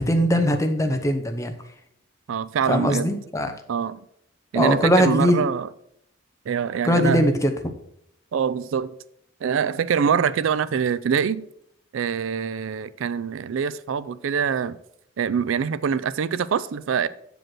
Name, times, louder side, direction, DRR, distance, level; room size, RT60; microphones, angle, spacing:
voice 1, 0.0-1.5 2.6-3.5 4.5-5.5 6.8-7.5, equal, 15° left, 0.8 m, -21 dB
voice 2, 2.3-3.1 3.7-4.0 4.5-5.7 6.5-7.3 8.3-8.9 9.4-11.4 11.9-14.8 15.2-17.1, right 7 dB, 70° right, 0.4 m, -24 dB
7.7 x 5.1 x 6.1 m
head